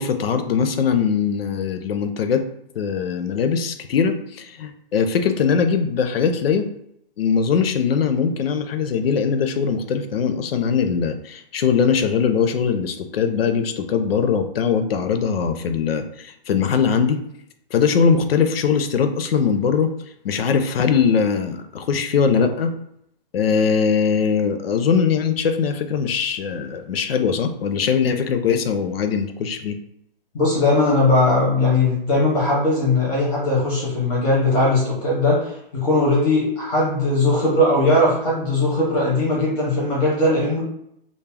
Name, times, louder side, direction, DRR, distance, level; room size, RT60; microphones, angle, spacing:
voice 1, 0.0-2.4 2.8-6.7 7.2-17.2 17.7-19.9 20.2-22.7 23.3-29.8, left 6 dB, 80° left, 8 dB, 0.5 m, -21 dB
voice 2, 30.3-40.6, left 2 dB, 10° left, -6 dB, 0.5 m, -19 dB
2.3 x 2.0 x 3.3 m, 0.76 s
hypercardioid pair, 155°, 29 cm